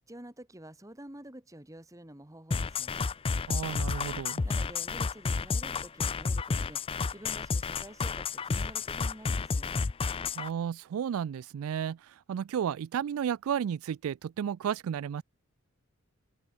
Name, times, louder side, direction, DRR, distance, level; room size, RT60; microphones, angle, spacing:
voice 1, 0.1-3.1 4.4-6.8 7.1-9.8, right 1 dB, 15° right, 1.6 m, -49 dB
sound 1, 2.5-10.5, left 4 dB, 25° left, 0.3 m, -31 dB
voice 2, 3.5-4.4 10.4-15.2, right 8 dB, 70° right, 0.3 m, -33 dB
open air
head